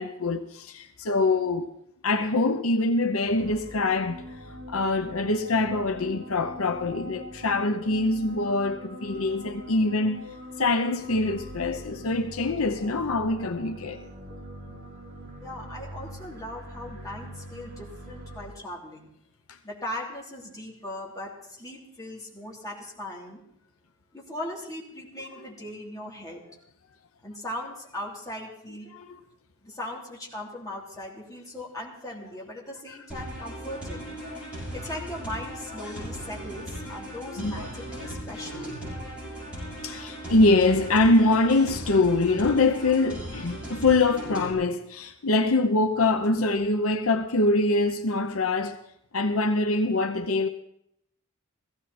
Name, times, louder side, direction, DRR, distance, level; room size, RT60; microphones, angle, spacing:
voice 1, 0.0-1.7 2.0-4.2 4.7-10.2 10.6-14.0 28.9-29.2 32.9-33.0 34.3-34.5 35.8-35.9 37.4-37.7 38.0-38.2 39.8-48.8 49.1-50.5, left 2 dB, 75° left, 0.8 m, -24 dB
sound 1, 3.2-18.5, equal, 50° right, 4.8 m, -42 dB
voice 2, 15.4-19.1 19.6-23.4 24.1-26.4 27.2-28.9 29.6-34.1 34.7-38.7, left 1 dB, 15° left, 3.3 m, -39 dB
sound 2, 33.1-44.5, equal, 5° right, 6.8 m, -38 dB
16.0 x 15.5 x 4.3 m
head